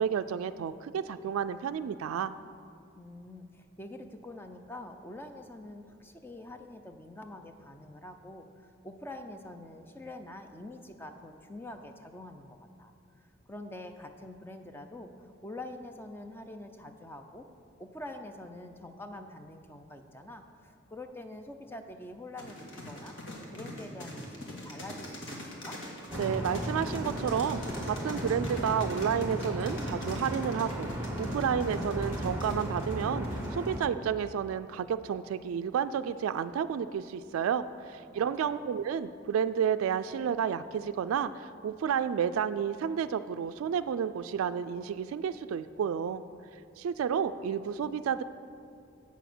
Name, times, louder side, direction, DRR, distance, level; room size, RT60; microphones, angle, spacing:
voice 1, 0.0-2.3 26.2-27.6 27.9-46.2 46.8-48.2, right 8 dB, 90° right, 13 dB, 0.3 m, -31 dB
voice 2, 2.9-12.9 13.5-17.4 17.8-23.1 23.5-25.8 38.1-38.6, left 1 dB, 10° left, 6 dB, 0.5 m, -45 dB
sound 1, 22.4-33.8, left 1 dB, 60° left, 1.7 m, -42 dB
sound 2, 26.1-33.8, right 1 dB, 10° right, 1.0 m, -35 dB
8.1 x 7.0 x 6.1 m, 2.6 s
head